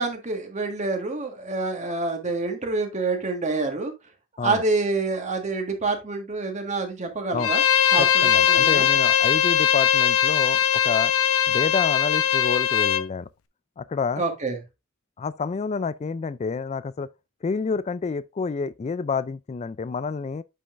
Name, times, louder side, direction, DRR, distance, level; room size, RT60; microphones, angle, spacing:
voice 1, 0.0-3.9 4.4-7.6 7.9-8.9 14.2-14.6, right 3 dB, 35° right, 1.6 m, -27 dB
Bowed string instrument, 7.4-13.0, left 9 dB, 90° left, 0.7 m, -20 dB
voice 2, 8.0-11.1 11.5-13.3 13.8-14.2 15.2-17.1 17.4-20.4, left 5 dB, 30° left, 0.3 m, -28 dB
8.4 x 5.5 x 2.5 m
head